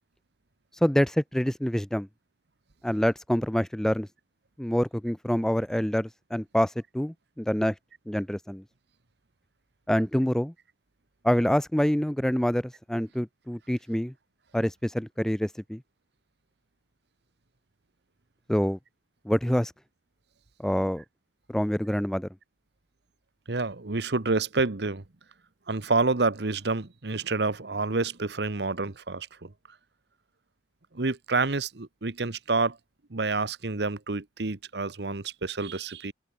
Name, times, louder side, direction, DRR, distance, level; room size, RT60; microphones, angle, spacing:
voice 1, 0.8-2.1 2.8-4.1 4.6-7.7 8.1-8.6 9.9-10.5 11.2-14.1 14.5-15.8 18.5-18.8 19.3-19.7 20.6-21.0 21.5-22.3, equal, 5° left, 0.3 m, -26 dB
voice 2, 23.5-25.0 25.7-29.5 30.9-32.8 33.1-36.1, right 3 dB, 65° right, 1.2 m, -28 dB
head